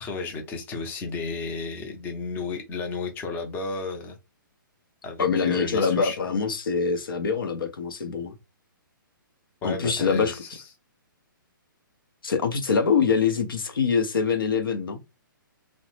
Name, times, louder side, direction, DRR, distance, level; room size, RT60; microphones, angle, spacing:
voice 1, 0.0-4.2 5.0-6.2 9.6-10.6, left 4 dB, 15° left, 0.6 m, -33 dB
voice 2, 5.2-8.3 9.6-10.3 12.2-15.0, left 5 dB, 80° left, 0.6 m, -24 dB
2.8 x 2.0 x 3.1 m
hypercardioid pair, 140°, 12 cm